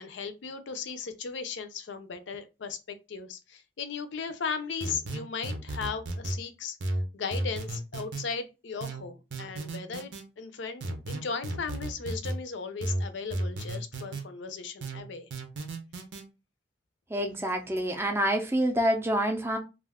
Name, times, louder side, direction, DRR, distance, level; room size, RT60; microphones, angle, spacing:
voice 1, 0.0-6.8 7.1-15.3, left 5 dB, 75° left, 0.4 m, -37 dB
sound 1, 4.8-6.4 6.8-8.3 8.8-10.2 10.8-12.4 12.8-14.3 14.8-16.2, right 1 dB, 70° right, 0.7 m, -34 dB
voice 2, 17.1-19.6, equal, 15° right, 0.4 m, -27 dB
2.4 x 2.3 x 3.4 m
head